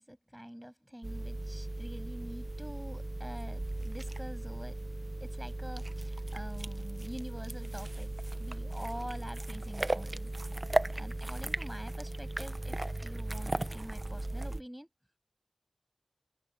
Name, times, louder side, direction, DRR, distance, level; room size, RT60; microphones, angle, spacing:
voice 1, 0.0-4.8 5.2-8.1 8.4-10.3 11.0-14.9, equal, 5° right, 7.9 m, -46 dB
sound 1, 1.0-14.6, right 1 dB, 40° right, 0.7 m, -36 dB
open air
wide cardioid pair, 50°, 0 cm